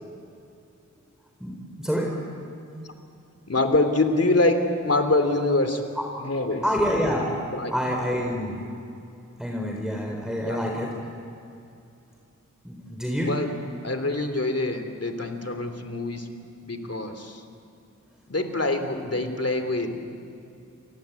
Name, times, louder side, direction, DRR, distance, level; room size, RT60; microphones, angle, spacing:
voice 1, 1.4-2.2 6.6-8.6 9.4-10.9 12.6-13.3, equal, ahead, 0 dB, 4.1 m, -27 dB
voice 2, 3.5-5.8 6.2-6.6 7.5-7.7 10.4-10.6 13.2-13.5 13.8-16.3 16.6-17.4 18.3-19.9, left 2 dB, 50° left, 7 dB, 3.2 m, -25 dB
29.0 x 24.0 x 8.3 m, 2.6 s
wide cardioid pair, 50°, 31 cm